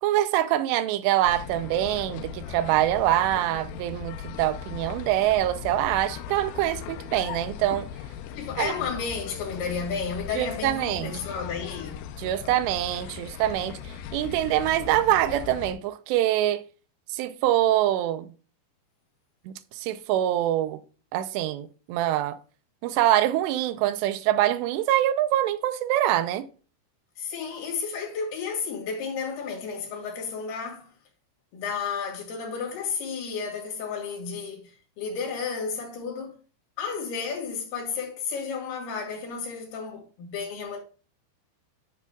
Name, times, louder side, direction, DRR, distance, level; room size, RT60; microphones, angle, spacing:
voice 1, 0.0-7.9 8.6-8.7 10.4-11.2 12.2-13.8 14.1-16.6 17.1-18.3 19.5-20.8 21.1-22.4 22.8-26.5, right 13 dB, 80° right, 2.6 m, -24 dB
sound 1, 1.2-15.7, left 9 dB, 80° left, 2.3 m, -39 dB
voice 2, 8.3-12.0 27.2-30.9 31.5-36.4 36.8-40.8, left 5 dB, 60° left, 3.8 m, -32 dB
10.5 x 7.0 x 2.3 m
omnidirectional pair, 5.3 m